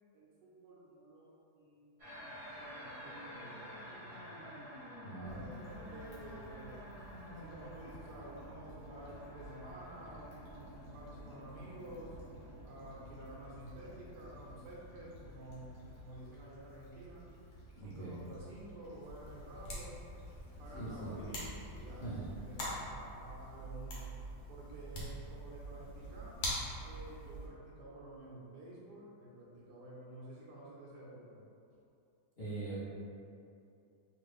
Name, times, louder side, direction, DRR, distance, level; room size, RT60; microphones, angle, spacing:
voice 1, 0.1-1.9 2.3-4.5 5.1-6.9 7.3-12.2 12.6-17.2 17.8-20.0 20.6-22.0 22.4-26.4 26.8-31.4, right 1 dB, 80° right, -5 dB, 1.2 m, -51 dB
sound 1, 2.0-16.0, equal, 25° right, 0.8 m, -51 dB
voice 2, 5.0-5.4 17.7-18.1 20.7-21.1 22.0-22.3 32.4-32.8, right 2 dB, 40° left, -16 dB, 1.1 m, -42 dB
Stream / Traffic noise roadway noise / Trickle dribble, 5.2-22.7, right 1 dB, 90° left, 1.5 m, -55 dB
sound 2, 19.0-27.5, equal, 75° left, 1.3 m, -44 dB
3.1 x 2.4 x 3.3 m, 2.6 s
omnidirectional pair, 1.8 m